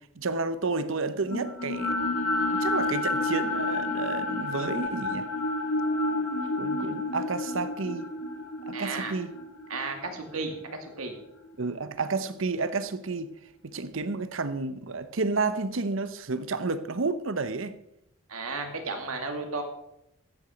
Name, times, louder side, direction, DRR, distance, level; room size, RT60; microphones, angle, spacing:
voice 1, 0.2-2.0 2.5-5.3 6.6-8.1 8.7-9.3 11.6-13.3 13.7-17.8, right 3 dB, 60° right, 0.8 m, -31 dB
sound 1, 1.3-11.5, left 2 dB, 75° left, 1.8 m, -30 dB
sound 2, 6.3-10.2 10.4-10.5 10.8-10.9, left 1 dB, 60° left, 1.9 m, -42 dB
voice 2, 8.7-9.2 9.7-11.1 18.3-19.6, right 3 dB, 80° right, 2.3 m, -34 dB
14.5 x 8.7 x 5.2 m
head